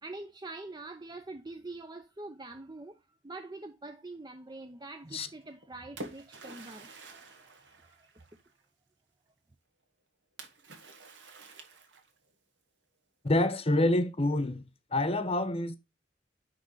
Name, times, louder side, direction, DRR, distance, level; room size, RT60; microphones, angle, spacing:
voice 1, 0.0-8.2, right 2 dB, 25° right, 0.6 m, -45 dB
Splash splatter, 5.4-8.6 10.4-12.3, right 2 dB, 90° right, 1.6 m, -48 dB
voice 2, 13.2-14.6 14.9-15.7, left 1 dB, 35° left, 1.0 m, -27 dB
9.8 x 3.4 x 4.0 m
head